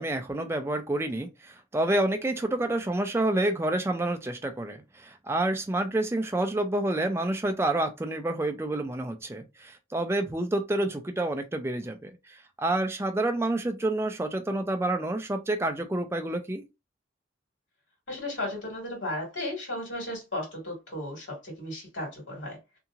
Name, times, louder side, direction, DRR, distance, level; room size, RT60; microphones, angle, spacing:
voice 1, 0.0-16.6, right 1 dB, 15° right, 0.4 m, -28 dB
voice 2, 18.1-22.8, left 1 dB, 80° left, 1.8 m, -35 dB
2.8 x 2.7 x 2.4 m
head